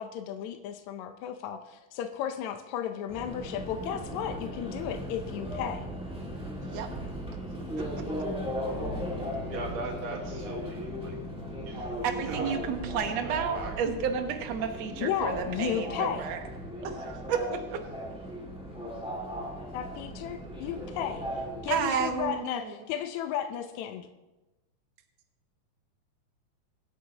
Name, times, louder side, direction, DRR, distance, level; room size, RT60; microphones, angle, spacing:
voice 1, 0.0-5.8 15.0-16.3 19.7-21.3 21.6-24.1, left 9 dB, 75° left, 6 dB, 1.9 m, -34 dB
Subway metro underground, 3.1-22.3, equal, 5° right, 1.0 m, -38 dB
sound 1, 8.7-20.0, left 2 dB, 45° left, 2.8 m, -45 dB
voice 2, 9.5-11.2 11.6-12.0 12.3-12.5 13.1-13.7, right 3 dB, 80° right, 1 dB, 3.2 m, -39 dB
voice 3, 12.0-16.4 16.8-17.8 21.7-22.7, right 7 dB, 65° right, 5 dB, 2.1 m, -31 dB
24.0 x 8.3 x 2.9 m, 1.1 s
omnidirectional pair, 3.6 m